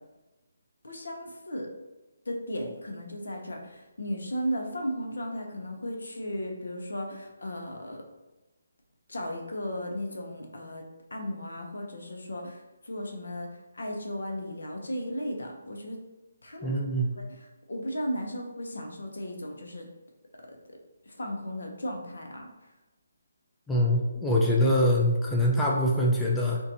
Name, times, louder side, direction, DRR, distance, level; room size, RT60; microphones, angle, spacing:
voice 1, 0.8-1.7 2.3-8.0 9.1-10.8 11.1-13.5 13.7-16.0 16.4-16.8 17.2-17.3 17.7-19.9 21.1-22.4, equal, 80° left, 1 dB, 0.5 m, -35 dB
voice 2, 16.6-17.1 23.7-26.6, left 1 dB, 5° left, -4 dB, 0.3 m, -24 dB
2.5 x 2.2 x 2.6 m, 1.1 s
figure-of-eight pair, 155°, 0 cm